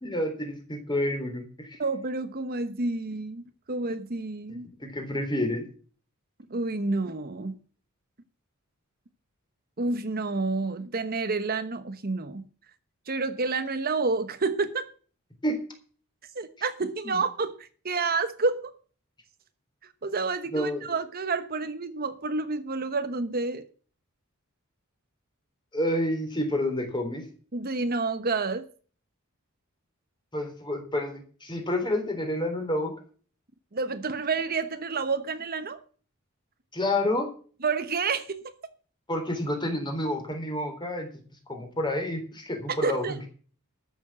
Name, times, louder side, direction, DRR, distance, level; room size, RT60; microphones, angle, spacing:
voice 1, 0.0-1.8 4.8-5.7 15.4-15.6 17.0-17.2 20.5-20.9 25.7-27.3 30.3-32.9 36.7-37.3 39.1-41.1 41.5-43.3, left 1 dB, 20° left, 4 dB, 3.7 m, -29 dB
voice 2, 1.8-4.7 6.5-7.6 9.8-12.4 13.1-14.9 16.3-18.7 20.0-23.6 27.5-28.7 33.7-35.8 37.6-38.5 42.7-43.3, right 3 dB, 45° right, 10 dB, 1.1 m, -29 dB
13.0 x 7.2 x 7.5 m, 0.41 s
head